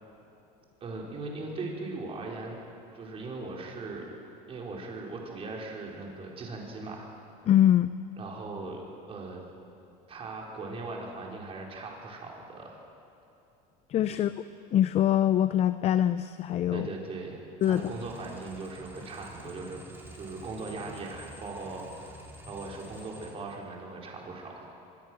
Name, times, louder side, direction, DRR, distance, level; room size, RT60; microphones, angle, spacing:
voice 1, 0.8-2.6 2.9-4.0 4.5-7.1 8.2-9.5 10.1-12.9 14.1-14.2 16.7-19.8 20.1-24.7, right 3 dB, 30° right, -1 dB, 4.3 m, -39 dB
voice 2, 7.5-7.9 13.9-14.3 14.7-16.9 17.6-17.9, left 11 dB, 35° left, 13 dB, 0.5 m, -23 dB
sound 1, 17.6-23.3, equal, 10° right, 3.1 m, -49 dB
24.0 x 21.5 x 6.2 m, 2.8 s
supercardioid pair, 135°, 19 cm